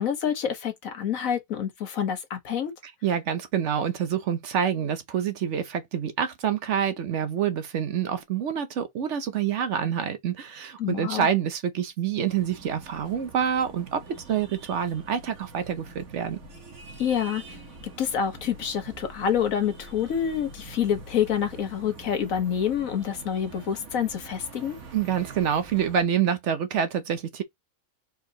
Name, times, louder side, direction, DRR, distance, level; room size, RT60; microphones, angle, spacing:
voice 1, 0.0-2.7 10.8-11.3 17.0-17.6 18.0-24.8, left 8 dB, 70° left, 1.5 m, -27 dB
voice 2, 3.0-16.4 24.9-27.4, right 8 dB, 60° right, 0.9 m, -27 dB
sound 1, 12.3-26.0, right 3 dB, 80° right, 1.8 m, -45 dB
4.4 x 4.0 x 2.8 m
omnidirectional pair, 1.5 m